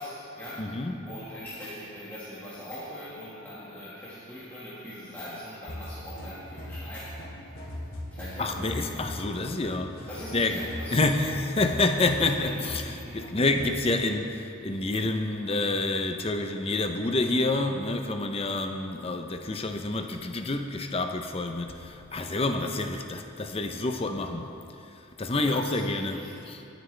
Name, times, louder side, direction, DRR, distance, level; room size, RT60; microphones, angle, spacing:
voice 1, 0.0-7.2 7.6-7.7 8.1-9.1 10.1-11.1 12.4-13.2 25.4-26.4, equal, 10° left, -10 dB, 1.7 m, -41 dB
voice 2, 0.6-1.1 8.4-24.5 24.9-26.6, left 2 dB, 25° left, 6 dB, 0.6 m, -28 dB
sound 1, 5.7-13.7, left 1 dB, 75° left, 2.4 m, -40 dB
20.5 x 9.2 x 3.3 m, 2.8 s
head